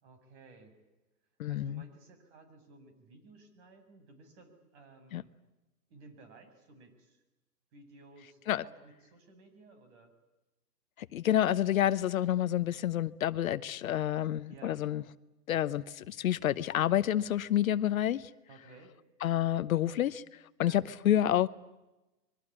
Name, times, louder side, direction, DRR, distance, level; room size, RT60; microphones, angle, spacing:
voice 1, 0.0-0.8 1.5-5.3 5.9-7.2 7.7-10.1 14.5-14.8 18.5-18.9 20.6-20.9, right 3 dB, 40° right, 6.9 m, -56 dB
voice 2, 1.4-1.8 5.1-5.2 8.5-8.6 11.0-15.0 15.5-18.3 19.2-21.5, left 12 dB, 55° left, 1.0 m, -29 dB
25.5 x 23.0 x 9.8 m
hypercardioid pair, 140°, 50 cm